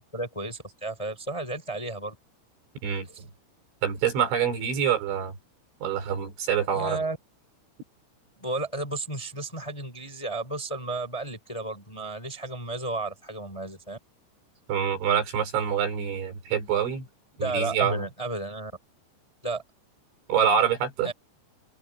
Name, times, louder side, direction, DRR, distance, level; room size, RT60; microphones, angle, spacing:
voice 1, 0.1-2.1 3.0-3.3 6.7-7.2 8.4-14.0 17.4-18.7 19.4-19.6 21.0-21.1, right 2 dB, 5° left, 4.0 m, -33 dB
voice 2, 3.8-5.3 5.8-7.0 14.7-17.1 17.4-18.1 20.3-21.1, right 8 dB, 60° right, 7.8 m, -26 dB
open air
omnidirectional pair, 6.0 m